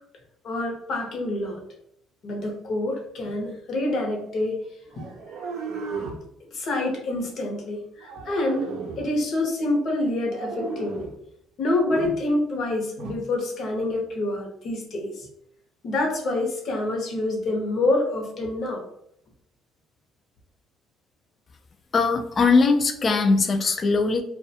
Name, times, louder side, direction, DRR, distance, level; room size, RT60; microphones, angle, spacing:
voice 1, 0.4-1.6 2.2-4.6 4.9-5.0 6.5-11.1 11.6-15.3 15.8-18.8, left 2 dB, 45° left, 0 dB, 0.7 m, -27 dB
sound 1, 4.9-6.3 8.0-9.1 10.2-11.2 11.9-12.2 13.0-13.2, right 4 dB, 65° right, 0.5 m, -34 dB
voice 2, 21.9-24.2, left 4 dB, 30° left, 6 dB, 0.3 m, -20 dB
2.3 x 2.1 x 2.7 m, 0.71 s
cardioid pair, 145°, 0 cm